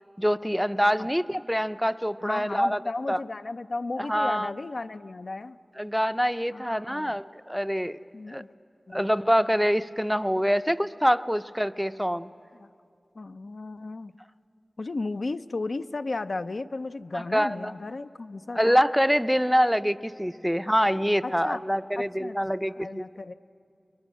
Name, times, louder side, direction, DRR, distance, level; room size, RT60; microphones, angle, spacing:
voice 1, 0.2-2.8 3.1-3.2 4.0-4.5 5.8-8.0 8.3-8.4 8.9-12.3 17.1-17.7 18.5-23.0, equal, ahead, 13 dB, 0.5 m, -25 dB
voice 2, 2.2-5.6 6.5-7.1 8.1-8.5 8.9-9.0 12.6-12.7 13.2-14.1 14.8-18.8 21.2-21.6 22.0-22.4 22.8-23.3, left 3 dB, 70° left, 10 dB, 0.5 m, -34 dB
29.5 x 21.5 x 6.2 m, 2.5 s
wide cardioid pair, 55°, 0 cm